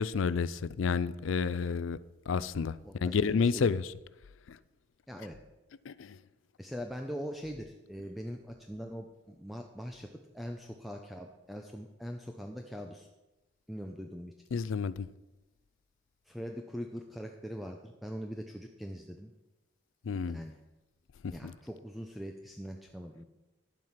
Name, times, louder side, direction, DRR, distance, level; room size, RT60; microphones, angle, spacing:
voice 1, 0.0-2.0 2.3-3.9 4.5-4.6 5.8-6.2 14.5-15.1 20.0-20.4 21.2-21.5, left 5 dB, 85° left, 0.4 m, -30 dB
voice 2, 2.8-3.7 5.1-5.4 6.6-13.1 13.7-14.3 16.3-19.3 20.3-20.6 21.3-23.2, equal, ahead, 0.6 m, -42 dB
10.5 x 7.6 x 5.7 m
head